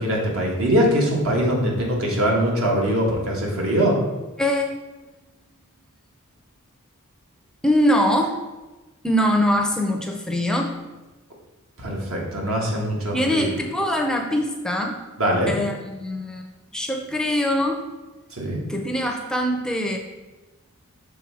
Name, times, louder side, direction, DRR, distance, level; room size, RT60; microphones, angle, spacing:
voice 1, 0.0-4.0 11.8-13.5 15.2-15.5 18.3-18.6, equal, 75° right, -1 dB, 1.4 m, -22 dB
voice 2, 4.4-4.7 7.6-8.4 9.0-10.7 13.1-15.0 15.5-16.5 16.7-17.8 18.7-20.0, equal, 5° left, 2 dB, 0.5 m, -22 dB
6.3 x 3.5 x 4.7 m, 1.1 s
head